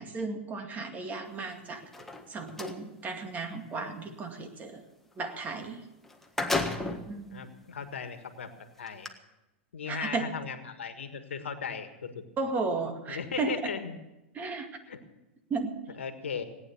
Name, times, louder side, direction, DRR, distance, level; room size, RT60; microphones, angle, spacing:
voice 1, 0.0-1.8 2.3-4.8 5.2-5.9 7.0-7.4 9.9-10.3 12.4-13.7 14.3-14.7 15.5-15.8, right 3 dB, 25° right, 5 dB, 2.2 m, -34 dB
sound 1, 1.8-2.8 5.6-5.7 6.0-7.1 7.8-7.9 8.9-9.1, left 2 dB, 5° left, 1.5 m, -32 dB
voice 2, 6.4-7.0 7.3-8.5 8.8-9.1 9.7-11.9 12.1-12.2 13.1-14.0 14.9-15.0 16.0-16.4, left 6 dB, 85° left, 8 dB, 1.6 m, -37 dB
18.0 x 9.5 x 7.1 m, 0.98 s
hypercardioid pair, 105°, 6 cm